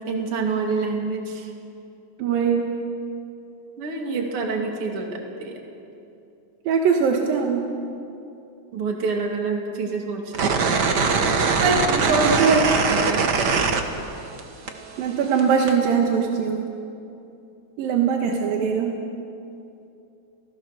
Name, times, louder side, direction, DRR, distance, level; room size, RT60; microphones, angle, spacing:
voice 1, 0.1-1.5 3.8-5.6 8.7-10.9 11.3-12.3 12.9-13.4, right 3 dB, 45° right, 1 dB, 3.0 m, -27 dB
voice 2, 2.2-2.7 6.7-7.7 12.2-12.6 15.0-16.7 17.8-19.0, right 6 dB, 90° right, 2 dB, 3.2 m, -21 dB
sound 1, 10.3-14.4 14.7-15.7, right 4 dB, 70° right, 1.0 m, -21 dB
29.5 x 17.0 x 6.6 m, 2.7 s
omnidirectional pair, 4.0 m